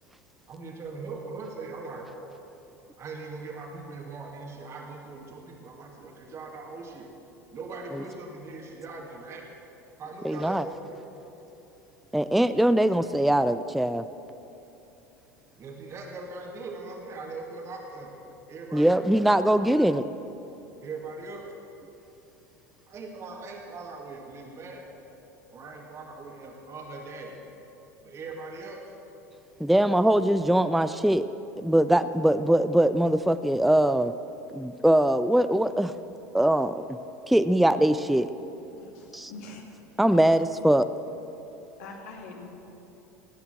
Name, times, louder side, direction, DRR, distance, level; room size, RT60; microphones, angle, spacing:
voice 1, 0.5-2.1 3.0-7.1 7.5-9.6 10.0-11.0 15.6-18.1 18.5-19.0 19.5-19.7 20.8-21.5 22.9-24.8 25.5-27.4 28.0-28.9, right 3 dB, 30° right, 0 dB, 2.1 m, -40 dB
voice 2, 10.2-10.7 12.1-14.0 18.7-20.1 29.6-31.3 31.6-34.1 34.5-35.9 36.3-36.8 37.3-38.3 39.1-39.3 40.0-40.9, right 1 dB, ahead, 12 dB, 0.4 m, -22 dB
voice 3, 38.7-39.6 41.8-42.5, left 3 dB, 60° left, 1 dB, 2.5 m, -44 dB
18.0 x 9.6 x 7.4 m, 3.0 s
figure-of-eight pair, 75°, 9 cm